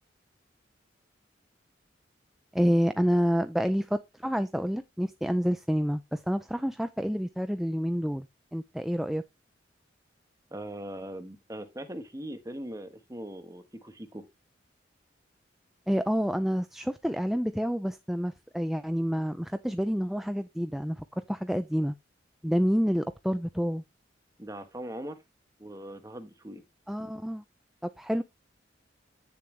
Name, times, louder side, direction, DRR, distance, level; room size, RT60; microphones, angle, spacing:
voice 1, 2.5-9.2 15.9-21.9 22.4-23.8 26.9-27.4 27.8-28.2, equal, ahead, 0.4 m, -28 dB
voice 2, 10.5-14.3 24.4-25.2 25.6-26.6, right 1 dB, 15° right, 1.2 m, -40 dB
9.4 x 7.0 x 3.2 m
head